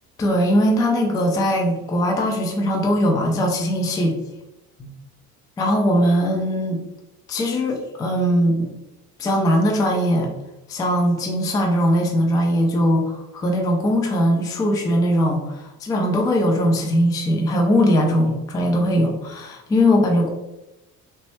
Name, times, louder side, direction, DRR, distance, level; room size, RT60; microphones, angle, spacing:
voice 1, 0.2-4.2 4.8-4.9 5.6-6.8 7.3-8.7 9.2-10.3 10.7-20.3, equal, 10° left, 2 dB, 0.3 m, -20 dB
3.2 x 2.9 x 3.0 m, 0.97 s
figure-of-eight pair, 55°, 48 cm